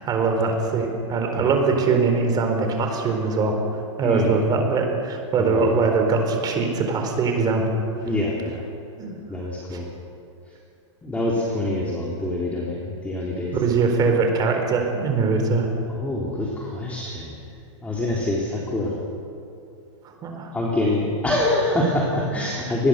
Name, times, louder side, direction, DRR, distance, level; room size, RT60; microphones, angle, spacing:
voice 1, 0.0-3.6 4.0-7.6 9.0-9.2 9.7-9.8 13.5-15.7 20.0-20.5, right 4 dB, 25° right, 4 dB, 4.3 m, -22 dB
voice 2, 4.0-4.4 5.3-5.7 8.0-8.6 9.3-9.9 11.0-13.6 15.9-17.3 17.8-19.0 20.5-22.9, left 1 dB, 10° left, -3 dB, 3.5 m, -25 dB
26.0 x 20.5 x 6.8 m, 2.6 s
hypercardioid pair, 135°, 16 cm